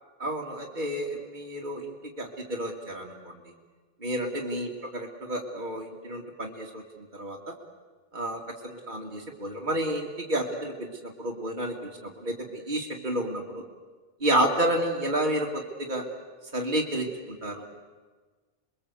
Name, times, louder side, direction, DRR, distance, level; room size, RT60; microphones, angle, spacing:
voice 1, 0.2-3.1 4.0-6.8 7.1-7.5 8.1-13.6 14.2-16.0 16.5-17.6, right 1 dB, 45° right, -2 dB, 2.5 m, -30 dB
29.0 x 21.5 x 8.2 m, 1.3 s
omnidirectional pair, 1.1 m